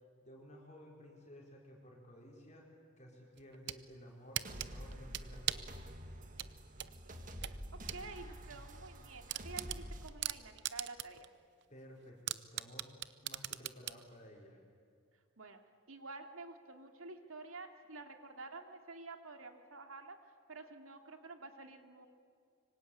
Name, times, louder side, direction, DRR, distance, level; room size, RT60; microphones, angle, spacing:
voice 1, 0.2-2.6 3.0-5.8 11.7-13.0 13.2-14.6, equal, 35° left, -1 dB, 4.6 m, -55 dB
sound 1, 3.4-3.8 4.3-5.7 6.4-8.0 8.4-8.5 8.9-9.0 9.3-11.2 11.6-11.7 12.3-14.0, right 12 dB, 55° right, 0.8 m, -39 dB
sound 2, 4.4-10.1, equal, 40° right, 2.1 m, -48 dB
voice 2, 7.0-11.3 15.4-15.6 15.9-22.1, right 3 dB, 80° right, 5 dB, 2.6 m, -50 dB
26.0 x 24.5 x 8.6 m, 2.3 s
head